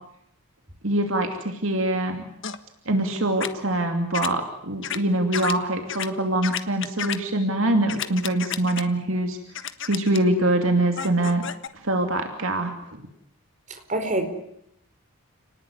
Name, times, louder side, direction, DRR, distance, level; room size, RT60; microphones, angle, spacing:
voice 1, 0.8-2.2 2.9-9.4 9.8-11.4 11.8-12.7, right 1 dB, 60° right, 5 dB, 2.8 m, -24 dB
sound 1, 2.4-2.6 3.4-3.5 4.1-4.3 4.8-5.0 5.3-5.5 5.9-6.1 6.4-7.2 7.9-8.8 9.5-10.2 11.0-11.7, left 8 dB, 55° left, 1.5 m, -30 dB
voice 2, 13.7-14.3, right 1 dB, 35° right, 6 dB, 4.5 m, -26 dB
30.0 x 19.5 x 9.7 m, 0.77 s
head